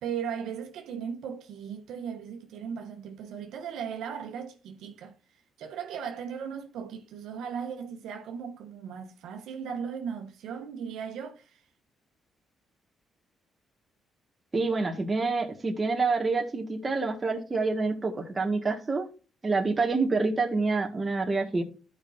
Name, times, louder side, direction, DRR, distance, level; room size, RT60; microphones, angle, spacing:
voice 1, 0.0-5.2 5.6-11.6, right 7 dB, 85° right, 1.1 m, -37 dB
voice 2, 14.5-19.1 19.4-21.6, right 3 dB, 25° right, 1.8 m, -27 dB
13.5 x 5.3 x 2.6 m
cardioid pair, 90°, 0 cm